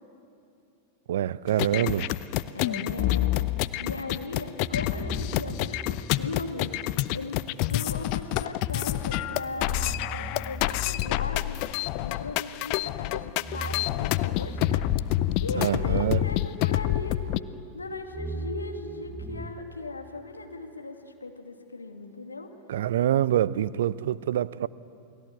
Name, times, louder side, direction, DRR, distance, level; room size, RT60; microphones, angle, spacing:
voice 1, 1.1-2.1 15.5-16.2 22.7-24.7, right 11 dB, 60° right, 0.5 m, -25 dB
sound 1, 1.5-17.4, left 16 dB, 45° left, 0.6 m, -28 dB
voice 2, 2.5-3.5 3.8-6.8 7.1-11.6 12.0-14.8 15.4-17.2 17.7-22.5, left 3 dB, 80° left, 2.4 m, -38 dB
sound 2, 4.6-7.5 8.7-12.6 13.3-17.3 17.6-19.5, right 1 dB, 10° left, 1.1 m, -40 dB
29.0 x 20.0 x 8.4 m
figure-of-eight pair, 90°, 0 cm